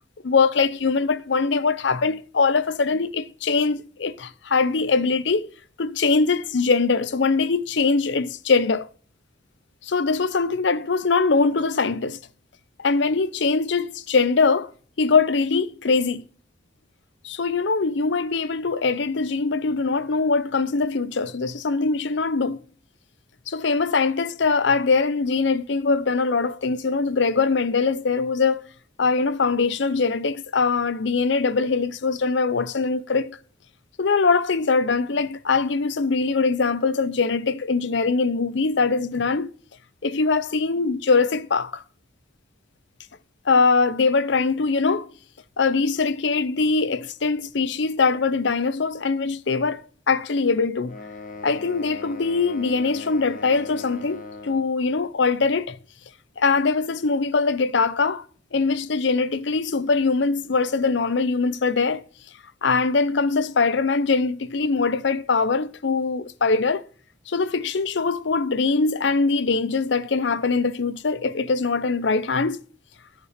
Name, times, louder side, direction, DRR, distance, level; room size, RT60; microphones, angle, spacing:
voice 1, 0.2-5.5 5.8-8.9 9.8-12.2 12.8-14.7 15.0-16.2 17.2-22.6 23.5-28.6 29.0-33.4 34.0-39.5 40.0-41.8 43.5-45.1 45.6-51.0 51.4-55.8 56.4-58.2 58.5-62.0 62.6-66.8 67.3-72.6, left 4 dB, 70° left, 0.6 m, -22 dB
sound 1, 50.8-54.7, left 3 dB, 40° left, 1.6 m, -39 dB
10.5 x 6.7 x 5.0 m
head